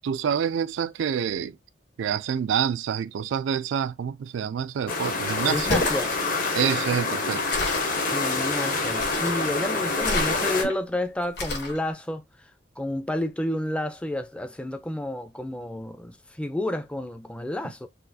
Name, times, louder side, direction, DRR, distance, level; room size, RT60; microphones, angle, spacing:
voice 1, 0.0-1.6 2.0-5.7 6.5-7.5, right 8 dB, 80° right, 0.3 m, -27 dB
sound 1, 4.9-10.6, left 3 dB, 50° left, 1.0 m, -27 dB
voice 2, 5.5-6.1 8.1-12.2 12.8-17.9, left 1 dB, 5° left, 0.4 m, -30 dB
sound 2, 5.6-6.0 7.5-8.0 9.0-9.5 10.0-10.7 11.4-11.8, left 2 dB, 65° left, 1.5 m, -29 dB
4.1 x 2.4 x 2.6 m
head